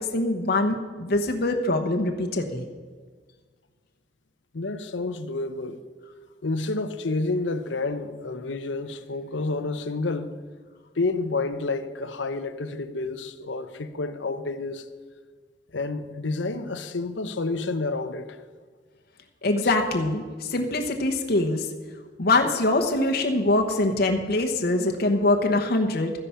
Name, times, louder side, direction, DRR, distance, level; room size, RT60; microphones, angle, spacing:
voice 1, 0.1-2.7 19.4-21.7 22.2-26.1, left 2 dB, 55° left, 1.1 m, -23 dB
voice 2, 4.5-5.8 6.4-10.3 11.0-14.8 15.7-18.4, left 3 dB, 85° left, 0.9 m, -29 dB
13.5 x 10.0 x 5.7 m
head